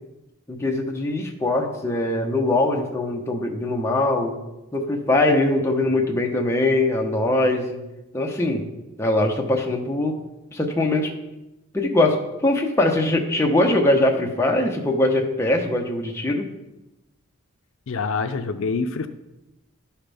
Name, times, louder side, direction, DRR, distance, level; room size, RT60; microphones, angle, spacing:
voice 1, 0.5-4.3 4.7-7.8 8.1-8.7 9.0-10.1 10.5-11.1 11.7-12.2 12.4-16.5, left 2 dB, 10° left, 1 dB, 0.9 m, -21 dB
voice 2, 17.9-19.1, left 4 dB, 70° left, 8 dB, 0.5 m, -26 dB
12.0 x 5.8 x 3.5 m, 0.98 s
head